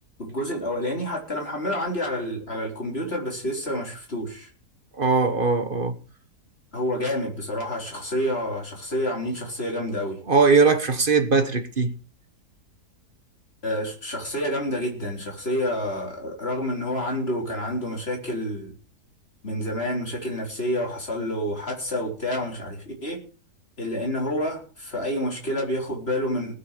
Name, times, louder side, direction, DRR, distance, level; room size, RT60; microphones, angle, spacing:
voice 1, 0.2-4.5 6.7-10.2 13.6-18.7 19.4-23.2 23.8-26.5, equal, 35° left, 4.5 m, -28 dB
voice 2, 5.0-6.0 10.3-11.9, right 4 dB, 35° right, 1.3 m, -20 dB
19.0 x 7.1 x 6.6 m
omnidirectional pair, 1.8 m